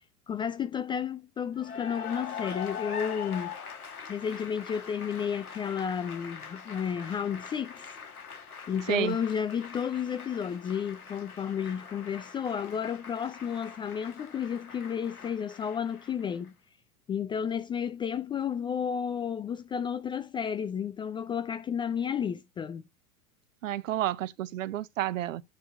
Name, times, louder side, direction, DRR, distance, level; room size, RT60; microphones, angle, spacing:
voice 1, 0.3-3.5 4.1-7.9 8.7-16.5 17.1-22.8, left 7 dB, 10° left, 0.4 m, -32 dB
Cheering / Applause, 1.5-16.5, left 7 dB, 75° left, 2.7 m, -43 dB
voice 2, 23.6-25.4, right 13 dB, 60° right, 0.8 m, -30 dB
9.4 x 4.4 x 4.7 m
figure-of-eight pair, 90°, 44 cm